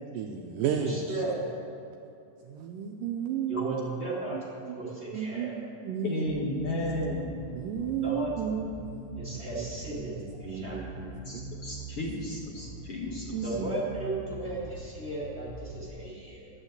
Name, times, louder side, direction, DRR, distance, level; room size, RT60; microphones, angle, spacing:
voice 1, 0.1-1.2 2.4-3.7 4.3-4.4 4.7-6.3 7.5-9.7 10.0-10.1 10.5-11.4 13.3-13.7, right 7 dB, 90° right, 2 dB, 1.9 m, -33 dB
voice 2, 0.7-1.5 3.5-4.4 4.8-5.6 8.0-8.3 9.1-10.8 13.4-16.5, right 2 dB, 20° right, -7 dB, 1.9 m, -35 dB
voice 3, 6.0-7.3 11.2-13.5, left 1 dB, 85° left, -3 dB, 1.3 m, -33 dB
Bass guitar, 6.3-15.9, right 1 dB, 65° left, 2.6 m, -43 dB
11.0 x 9.0 x 8.0 m, 2.6 s
omnidirectional pair, 4.6 m